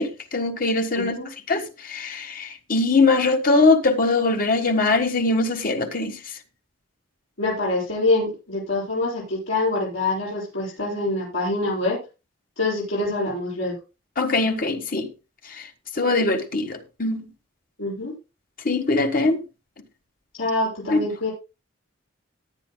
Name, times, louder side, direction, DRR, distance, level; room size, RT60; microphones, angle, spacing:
voice 1, 0.0-1.2 1.5-6.2 14.2-15.1 15.5-15.7 15.9-17.3 18.6-19.4 20.9-21.0, left 3 dB, 40° left, 1.5 m, -22 dB
voice 2, 1.0-1.3 7.4-12.0 12.6-13.8 17.8-18.1 20.3-21.3, left 2 dB, 80° left, 6.8 m, -25 dB
19.0 x 9.8 x 2.2 m
head